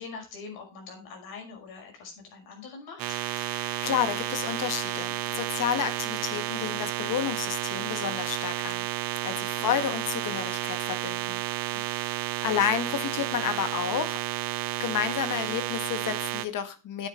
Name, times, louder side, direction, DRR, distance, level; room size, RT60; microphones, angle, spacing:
voice 1, 0.0-3.2 9.6-9.9 11.7-11.8, left 5 dB, 80° left, 1 dB, 5.6 m, -43 dB
sound 1, 3.0-16.5, right 14 dB, 65° right, 0.9 m, -32 dB
voice 2, 3.4-8.9 9.2-11.4 11.7-14.2 14.8-17.1, left 8 dB, 55° left, 9 dB, 1.8 m, -31 dB
9.1 x 9.0 x 4.5 m, 0.31 s
cardioid pair, 135°, 37 cm